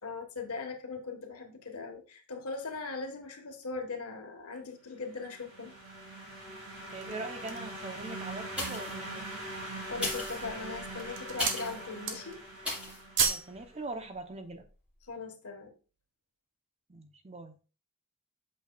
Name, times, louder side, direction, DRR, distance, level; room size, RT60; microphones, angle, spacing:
voice 1, 0.0-5.7 9.9-12.4 15.0-15.7, left 4 dB, 85° left, 1.5 m, -40 dB
sound 1, 5.0-13.6, right 1 dB, 80° right, 3.5 m, -42 dB
sound 2, 6.8-7.8 8.4-8.5 8.9-9.5 10.2-10.6 10.9-11.7 11.9-12.5 12.8-13.5 13.8-14.0, right 6 dB, 55° right, 1.1 m, -33 dB
voice 2, 6.9-9.3 13.2-14.7 16.9-17.6, right 2 dB, 30° right, 0.8 m, -42 dB
sound 3, 8.5-9.1 9.9-11.8 12.6-13.0 13.5-13.6, left 1 dB, 5° right, 3.2 m, -36 dB
8.3 x 6.3 x 2.4 m
head